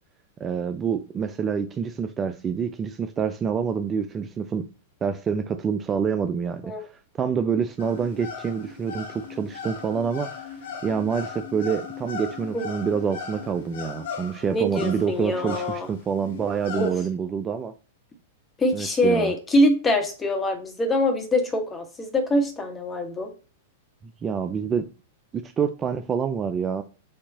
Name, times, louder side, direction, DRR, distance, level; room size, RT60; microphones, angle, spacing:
voice 1, 0.4-4.7 5.0-6.9 7.2-10.6 10.8-17.7 18.7-19.3 24.2-24.9 25.3-26.8, right 6 dB, 25° right, 0.4 m, -27 dB
sound 1, 7.8-16.9, left 6 dB, 65° left, 1.2 m, -38 dB
voice 2, 14.5-15.9 16.7-16.9 18.6-23.3, left 1 dB, 20° left, 1.5 m, -24 dB
6.4 x 2.8 x 2.9 m
figure-of-eight pair, 100°, 0 cm